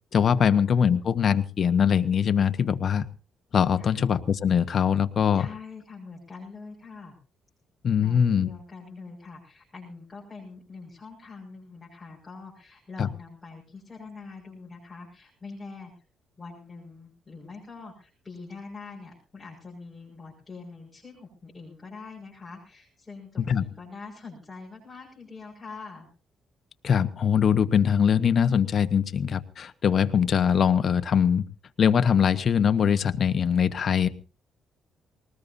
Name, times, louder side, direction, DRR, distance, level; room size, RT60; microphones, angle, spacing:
voice 1, 0.1-3.1 3.5-5.5 7.8-8.5 13.0-13.1 23.5-23.6 26.8-31.4 31.8-34.1, left 7 dB, 50° left, 11 dB, 1.1 m, -22 dB
voice 2, 5.3-7.2 8.0-16.0 16.4-26.1, left 4 dB, 20° left, -4 dB, 6.2 m, -44 dB
21.0 x 19.5 x 2.8 m, 0.36 s
cardioid pair, 90°, 0 cm